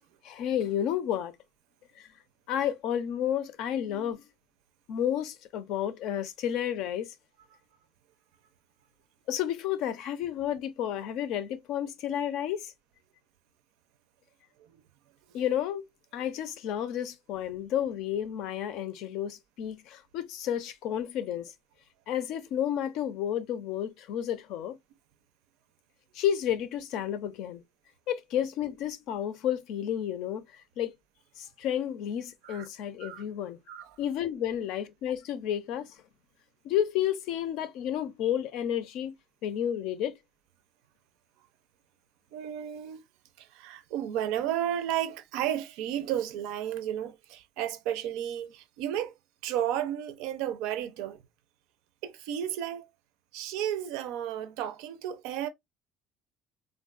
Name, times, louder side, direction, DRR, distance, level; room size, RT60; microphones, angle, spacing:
voice 1, 0.2-1.4 2.0-2.1 2.5-4.2 4.9-7.1 9.3-12.7 15.3-15.9 16.1-21.5 22.1-24.8 26.1-27.6 28.1-30.9 31.4-33.6 34.0-35.9 36.6-39.2 39.4-40.2, left 10 dB, 60° left, 0.4 m, -31 dB
voice 2, 42.3-43.0 43.4-49.1 49.4-51.2 52.0-52.9 53.3-55.5, right 11 dB, 85° right, 0.5 m, -33 dB
3.5 x 2.2 x 2.3 m
cardioid pair, 170°, 0 cm